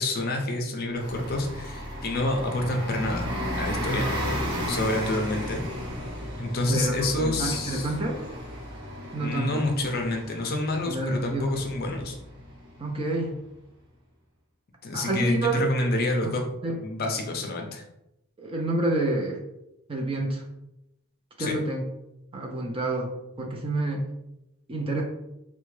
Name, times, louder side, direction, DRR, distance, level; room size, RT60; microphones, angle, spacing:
voice 1, 0.0-3.3 3.6-4.1 4.7-5.6 6.4-7.9 9.2-12.1 14.8-16.4 16.8-17.8 21.4-21.6, left 2 dB, 40° left, 2 dB, 0.5 m, -28 dB
Bus, 0.9-13.2, equal, 45° right, 1.0 m, -34 dB
voice 2, 6.7-8.2 9.1-9.6 10.7-11.5 12.8-13.4 14.9-15.7 16.2-16.3 16.6-16.8 18.4-19.4 19.9-20.4 21.4-21.8 22.3-23.1 23.4-24.1 24.7-25.0, right 2 dB, 25° right, 0 dB, 0.4 m, -28 dB
3.5 x 2.1 x 3.1 m, 0.87 s
head